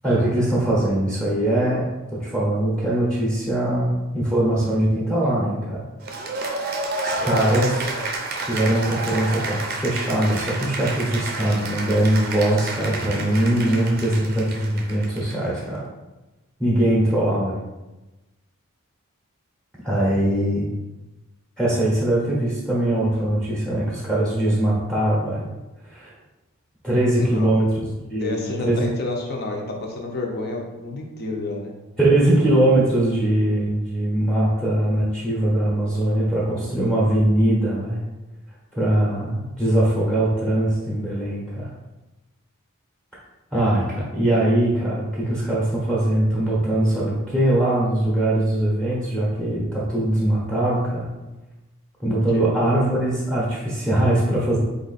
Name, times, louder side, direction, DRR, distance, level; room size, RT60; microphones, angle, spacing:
voice 1, 0.0-5.8 6.2-6.4 7.0-7.9 8.5-15.9 16.6-17.6 19.8-20.7 21.6-25.4 25.8-26.1 26.8-28.8 32.0-38.0 38.8-41.7 43.5-51.1 52.0-54.6, right 1 dB, 5° left, -6 dB, 0.8 m, -21 dB
Cheering / Applause, 6.0-15.6, right 2 dB, 45° right, 0.5 m, -30 dB
voice 2, 27.2-27.6 28.2-31.7 52.3-52.5, left 3 dB, 45° left, 1 dB, 0.7 m, -30 dB
4.1 x 2.5 x 4.0 m, 1.1 s
head